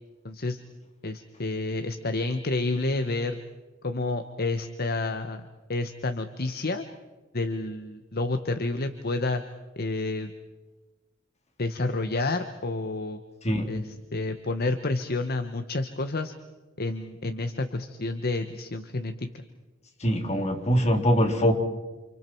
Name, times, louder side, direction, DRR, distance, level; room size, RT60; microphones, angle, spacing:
voice 1, 0.2-0.6 1.0-3.4 3.8-5.4 5.7-6.8 7.3-9.4 9.8-10.3 11.6-13.2 13.7-13.8 14.1-16.3 16.8-19.4, left 2 dB, 50° left, 1.2 m, -29 dB
voice 2, 13.4-13.7 20.0-21.5, equal, 35° left, 3.5 m, -23 dB
29.5 x 28.0 x 4.6 m
head